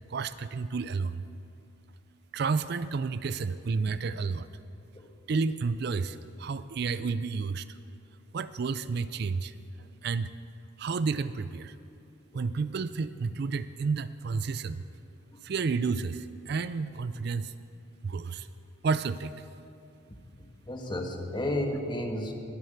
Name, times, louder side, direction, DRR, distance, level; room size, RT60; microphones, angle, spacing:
voice 1, 0.1-1.2 2.3-4.5 5.3-7.8 8.3-10.3 10.8-11.8 12.3-14.8 15.4-17.5 18.0-18.5 18.8-19.3, right 4 dB, 55° right, 14 dB, 0.4 m, -31 dB
voice 2, 20.4-22.3, left 1 dB, 25° left, 3 dB, 1.3 m, -33 dB
21.0 x 7.8 x 6.6 m, 2.6 s
head